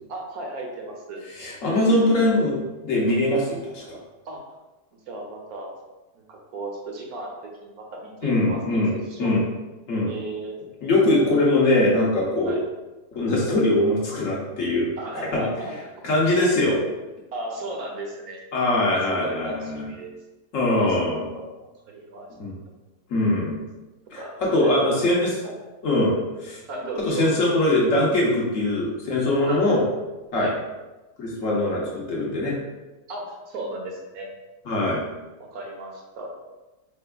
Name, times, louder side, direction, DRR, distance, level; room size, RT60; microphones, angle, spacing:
voice 1, 0.1-1.2 4.3-4.4 5.1-5.7 6.2-9.4 10.1-10.6 12.4-12.6 15.0-15.7 16.4-16.6 17.3-18.4 18.9-20.1 20.7-20.9 21.4-22.3 24.2-24.3 24.5-25.0 25.4-25.6 26.7-27.3 29.5-29.6 30.3-30.5 33.1-34.3 35.5-36.3, right 2 dB, 70° right, 0 dB, 1.1 m, -35 dB
voice 2, 1.4-4.0 8.2-8.9 9.2-9.4 9.9-10.1 10.8-12.6 13.1-14.9 15.3-15.4 16.0-16.8 18.5-19.9 20.5-21.3 22.4-22.5 23.1-23.6 24.1-24.2 24.5-25.3 25.8-26.1 26.4-26.6 27.0-29.8 30.3-30.5 31.2-32.6 34.7-35.0, left 1 dB, 55° left, -4 dB, 1.3 m, -22 dB
4.6 x 3.3 x 2.2 m, 1.1 s
omnidirectional pair, 1.8 m